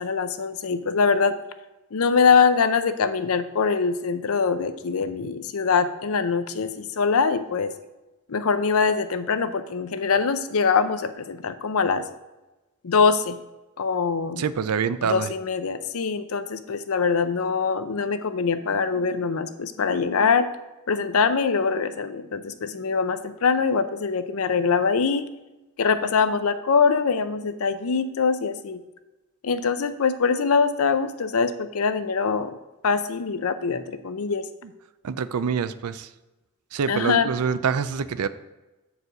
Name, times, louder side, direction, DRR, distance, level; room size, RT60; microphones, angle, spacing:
voice 1, 0.0-1.3 1.9-7.7 8.3-12.0 12.8-13.4 13.8-14.4 15.0-20.5 20.9-25.2 25.8-28.8 29.4-32.6 32.8-34.4 36.9-37.3, left 5 dB, 70° left, 11 dB, 0.6 m, -23 dB
voice 2, 14.4-15.3 35.0-36.1 36.7-38.3, right 6 dB, 90° right, 14 dB, 0.5 m, -26 dB
8.0 x 4.8 x 4.9 m, 1.1 s
head